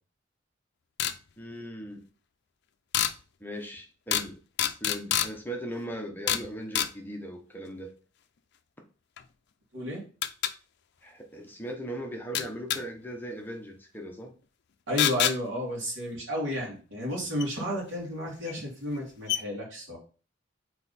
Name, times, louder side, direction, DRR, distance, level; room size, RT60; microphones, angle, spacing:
sound 1, 1.0-1.2 2.9-3.1 4.1-4.3 4.6-5.3 6.3-6.5 6.8-6.9 9.2-9.3 10.2-10.5 12.4-12.8 15.0-15.4 17.4-17.5 18.5-18.6 18.9-19.0 19.3-19.4, left 10 dB, 60° left, 0.5 m, -26 dB
voice 1, 1.4-2.0 3.4-4.4 4.7-7.9 11.0-14.3, equal, 10° left, 1 dB, 1.1 m, -38 dB
voice 2, 9.7-10.1 14.9-20.0, equal, 80° right, -2 dB, 2.7 m, -32 dB
5.3 x 4.5 x 4.2 m, 0.36 s
head